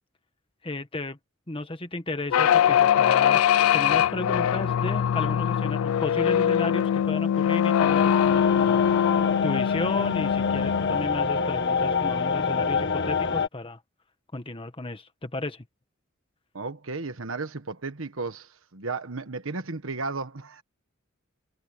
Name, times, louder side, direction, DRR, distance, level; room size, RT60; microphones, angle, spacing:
voice 1, 0.6-1.2 1.5-3.4 3.7-8.8 9.4-13.8 14.3-15.6, left 2 dB, 25° left, 1.6 m, -33 dB
sound 1, 2.3-11.1, left 9 dB, 85° left, 0.3 m, -22 dB
sound 2, 7.8-13.5, left 5 dB, 55° left, 1.8 m, -26 dB
voice 2, 16.5-20.6, right 3 dB, 70° right, 1.3 m, -34 dB
head